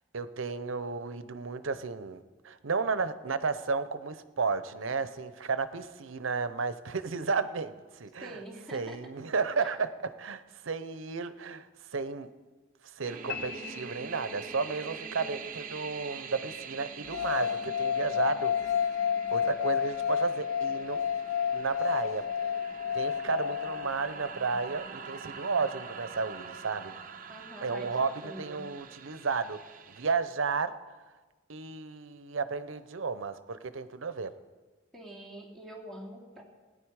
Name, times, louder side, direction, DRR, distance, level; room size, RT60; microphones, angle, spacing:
voice 1, 0.1-8.4 8.7-11.7 11.9-12.3 13.0-18.5 19.3-21.0 21.5-22.3 22.9-27.0 27.6-28.1 28.4-29.6 29.9-30.7 31.5-34.3, right 4 dB, 85° right, 13 dB, 0.7 m, -33 dB
voice 2, 8.2-9.0 9.6-9.7 27.3-27.9 28.2-28.7 34.9-36.4, right 1 dB, 5° left, -4 dB, 2.8 m, -45 dB
sound 1, 13.0-30.1, right 5 dB, 45° right, 0.7 m, -45 dB
sound 2, 13.3-14.8, left 8 dB, 55° left, 0.7 m, -42 dB
sound 3, 17.1-24.2, left 8 dB, 85° left, 0.4 m, -30 dB
17.0 x 9.5 x 4.8 m, 1.3 s
head